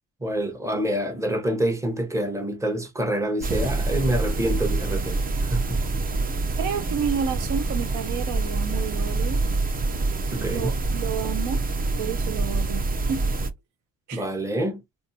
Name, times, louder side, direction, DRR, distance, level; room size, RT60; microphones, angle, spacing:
voice 1, 0.2-5.8 10.3-10.7 14.1-14.8, right 1 dB, 10° right, 0.9 m, -27 dB
sound 1, 3.4-13.5, right 3 dB, 30° right, 0.5 m, -26 dB
voice 2, 6.6-9.4 10.4-11.6 12.0-12.8 13.1-13.3 14.1-14.3, right 7 dB, 80° right, 0.6 m, -30 dB
2.6 x 2.4 x 2.6 m
cardioid pair, 90°, 30 cm